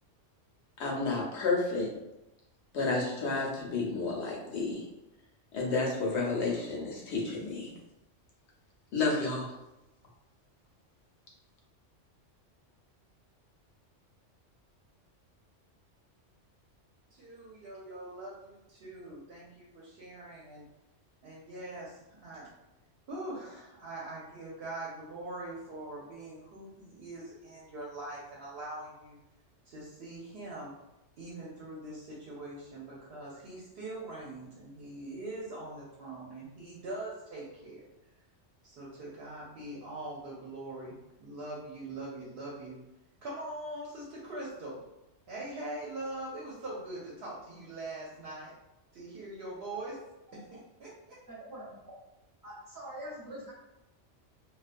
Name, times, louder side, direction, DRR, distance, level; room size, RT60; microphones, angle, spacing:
voice 1, 0.8-1.9 2.7-4.8 5.5-7.7 8.9-9.5, left 3 dB, 70° left, -2 dB, 0.9 m, -31 dB
voice 2, 17.2-20.6 21.2-21.9 22.2-22.5 23.1-29.2 29.7-30.7 31.2-37.8 38.6-42.7 43.2-44.0 44.3-44.8 45.3-48.5 48.9-50.0 50.3-51.2, right 2 dB, 60° right, -5 dB, 0.8 m, -42 dB
voice 3, 51.3-51.8 52.4-53.5, right 1 dB, 20° right, -6 dB, 0.7 m, -44 dB
2.3 x 2.3 x 2.4 m, 0.93 s
omnidirectional pair, 1.3 m